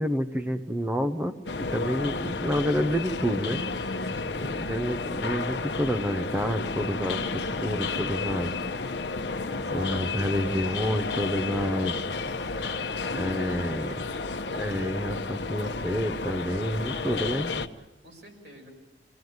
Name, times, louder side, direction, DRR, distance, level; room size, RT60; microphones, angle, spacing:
voice 1, 0.0-3.6 4.4-8.5 9.7-11.9 13.1-14.1 14.5-17.7, equal, 10° right, 9 dB, 0.7 m, -29 dB
sound 1, 1.5-17.7, left 3 dB, 70° left, 0.9 m, -32 dB
voice 2, 4.0-4.7 9.5-10.4 17.7-18.7, equal, 75° right, 0 dB, 6.2 m, -51 dB
23.5 x 17.5 x 9.4 m, 1.1 s
head